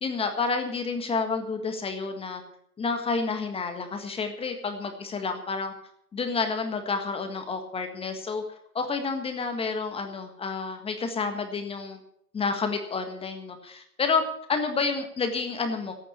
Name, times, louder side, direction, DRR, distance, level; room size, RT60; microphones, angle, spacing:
voice 1, 0.0-2.4 2.8-5.7 6.1-8.4 8.7-12.0 12.3-14.2 14.5-15.9, left 4 dB, 10° left, 6 dB, 1.6 m, -29 dB
13.5 x 9.3 x 8.1 m, 0.70 s
hypercardioid pair, 120°, 45 cm